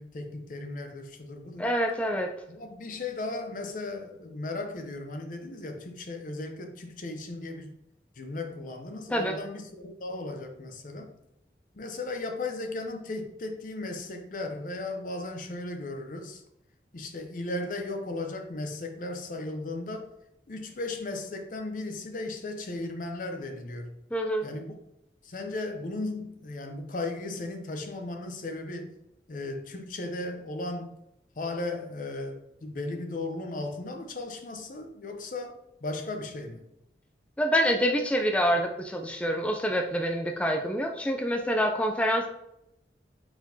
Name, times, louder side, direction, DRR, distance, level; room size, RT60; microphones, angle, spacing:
voice 1, 0.0-1.7 2.5-7.7 8.2-11.1 11.7-16.4 16.9-20.1 20.5-23.9 24.4-24.8 25.2-29.0 29.3-31.0 31.4-36.7, left 2 dB, 50° left, 5 dB, 0.6 m, -36 dB
voice 2, 1.6-2.3 9.1-9.4 24.1-24.5 37.4-42.3, equal, 5° left, 3 dB, 0.3 m, -26 dB
4.4 x 4.3 x 2.7 m, 0.82 s
head